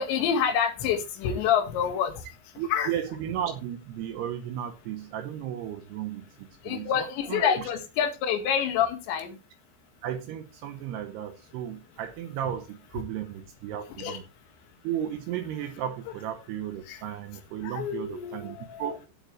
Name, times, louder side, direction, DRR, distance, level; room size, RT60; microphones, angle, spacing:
voice 1, 0.0-2.1 2.7-2.9 6.7-9.4 14.0-14.2 16.9-17.0 17.6-19.1, left 8 dB, 80° left, 6 dB, 4.1 m, -27 dB
voice 2, 2.6-7.7 10.0-14.2 14.8-19.0, right 10 dB, 75° right, 7 dB, 2.8 m, -34 dB
16.0 x 7.8 x 3.2 m, 0.28 s
omnidirectional pair, 5.1 m